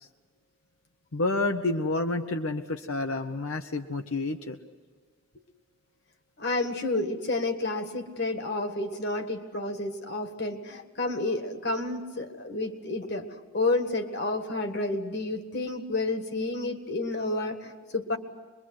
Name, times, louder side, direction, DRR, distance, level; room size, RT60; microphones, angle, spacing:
voice 1, 1.1-4.6 10.7-10.8, left 2 dB, 85° left, 5 dB, 1.0 m, -29 dB
voice 2, 6.4-13.3 13.5-18.2, left 2 dB, 50° left, 6 dB, 1.9 m, -30 dB
25.0 x 22.5 x 7.8 m, 1.4 s
head